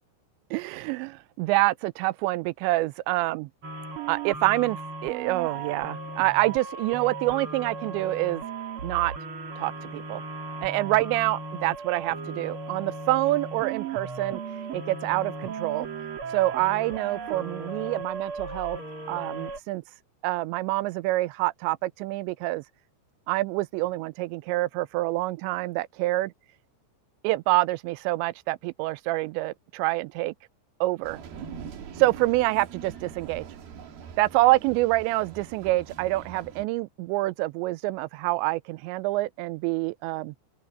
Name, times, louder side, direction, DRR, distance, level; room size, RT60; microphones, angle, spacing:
voice 1, 0.5-3.5 4.1-8.4 8.8-9.1 9.6-10.2 10.6-14.4 14.7-15.9 16.3-18.8 19.1-19.8 20.2-22.6 23.3-26.3 27.2-30.3 30.8-31.2 32.0-33.5 34.2-40.3, right 19 dB, 85° right, 2.9 m, -26 dB
sound 1, 3.6-19.6, right 4 dB, 45° right, 1.9 m, -36 dB
sound 2, 31.0-36.7, right 7 dB, 60° right, 3.8 m, -42 dB
open air
omnidirectional pair, 5.1 m